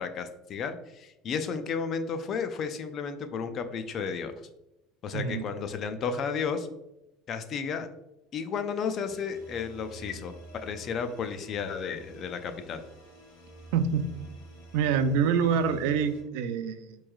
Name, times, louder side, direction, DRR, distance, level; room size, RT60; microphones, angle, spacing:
voice 1, 0.0-4.5 5.0-6.7 7.3-7.9 8.3-12.8, left 6 dB, 40° left, 8 dB, 0.4 m, -33 dB
voice 2, 5.1-5.4 13.7-14.1 14.7-17.0, right 6 dB, 75° right, 10 dB, 0.3 m, -26 dB
sound 1, 9.0-16.2, right 1 dB, 75° left, 1.3 m, -49 dB
4.4 x 3.1 x 2.3 m, 0.90 s
supercardioid pair, 135°, 0 cm